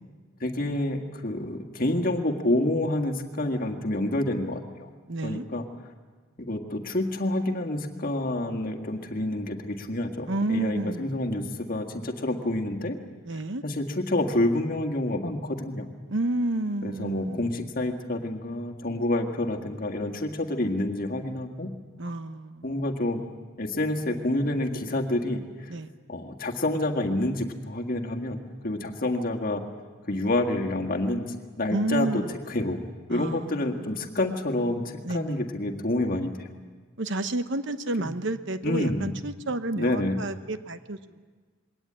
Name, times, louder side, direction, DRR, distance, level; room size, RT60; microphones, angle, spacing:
voice 1, 0.4-4.9 5.2-5.6 6.5-13.0 13.6-15.9 16.8-21.7 22.6-23.2 23.6-25.7 26.1-29.6 30.1-32.8 33.1-36.5 38.0-38.1 38.6-39.1 39.8-40.2, left 1 dB, 40° left, 2 dB, 1.7 m, -28 dB
voice 2, 5.1-5.5 10.3-11.5 13.2-13.6 16.1-17.7 22.0-22.7 25.7-25.9 31.7-32.4 33.1-34.1 35.0-35.4 37.0-41.2, right 2 dB, 55° right, 11 dB, 0.9 m, -31 dB
22.0 x 18.0 x 8.9 m, 1.4 s
head